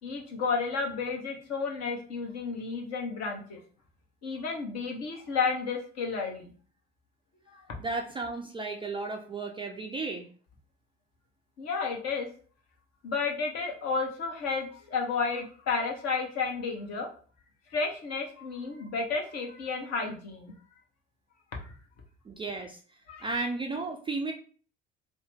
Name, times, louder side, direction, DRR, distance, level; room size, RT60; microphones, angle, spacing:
voice 1, 0.0-3.6 4.2-6.5 7.5-7.7 11.6-12.3 13.0-17.1 17.7-20.5 21.6-21.7 23.1-23.3, left 4 dB, 50° left, 1 dB, 1.0 m, -32 dB
voice 2, 7.8-10.3 22.3-22.8 23.2-24.3, right 3 dB, 15° right, 3 dB, 0.3 m, -34 dB
2.7 x 2.0 x 3.4 m, 0.42 s
figure-of-eight pair, 55°, 33 cm